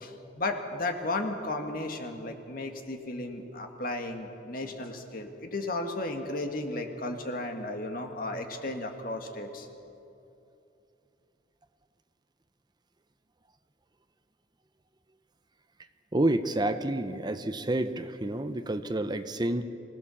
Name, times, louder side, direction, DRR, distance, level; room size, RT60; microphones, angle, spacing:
voice 1, 0.0-9.7, left 2 dB, 55° left, 4 dB, 1.9 m, -34 dB
voice 2, 16.1-19.6, right 1 dB, 25° right, 10 dB, 0.7 m, -29 dB
25.0 x 17.0 x 7.1 m, 2.8 s
head